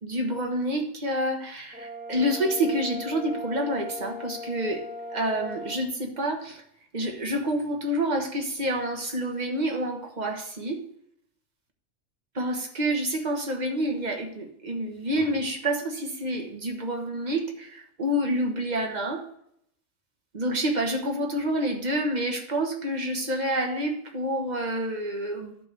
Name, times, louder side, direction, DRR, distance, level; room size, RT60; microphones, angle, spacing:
voice 1, 0.0-4.8 5.1-6.6 6.9-10.8 12.3-19.2 20.3-25.6, right 1 dB, 35° right, 3 dB, 1.4 m, -28 dB
Brass instrument, 1.7-5.8, left 2 dB, 10° right, 0.8 m, -38 dB
11.0 x 4.1 x 6.7 m, 0.72 s
omnidirectional pair, 1.4 m